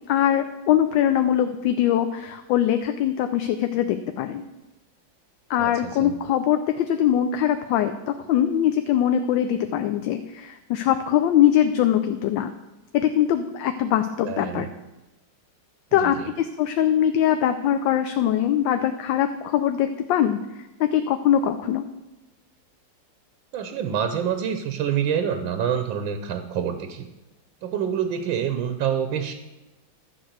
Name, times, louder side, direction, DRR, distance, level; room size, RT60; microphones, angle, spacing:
voice 1, 0.1-4.4 5.5-12.5 12.9-14.7 15.9-20.4 20.8-21.9, left 10 dB, 80° left, 7 dB, 1.3 m, -22 dB
voice 2, 5.6-6.1 14.2-14.7 15.9-16.3 23.5-27.1 27.6-29.3, right 8 dB, 85° right, 8 dB, 1.5 m, -27 dB
12.0 x 4.6 x 7.9 m, 1.0 s
omnidirectional pair, 2.1 m